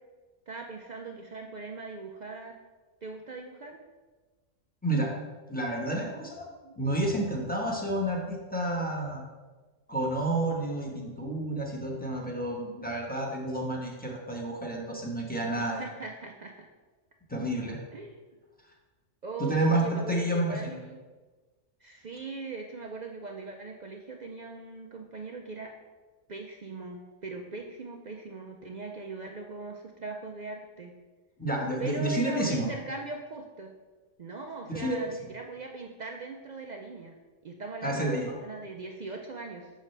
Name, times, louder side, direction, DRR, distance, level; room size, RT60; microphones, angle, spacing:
voice 1, 0.5-2.6 3.0-3.8 6.0-6.2 6.6-6.8 15.6-16.7 17.9-18.2 19.2-21.0 21.8-25.7 26.3-30.9 31.8-33.7 34.2-37.2 37.4-39.7, right 3 dB, 60° right, 2 dB, 0.4 m, -40 dB
voice 2, 5.5-6.5 6.8-9.2 9.9-15.8 17.3-17.8 19.4-20.8 31.4-32.7 34.7-35.3 37.8-38.3, right 1 dB, 10° left, -2 dB, 1.1 m, -30 dB
6.4 x 6.3 x 3.3 m, 1.3 s
omnidirectional pair, 1.3 m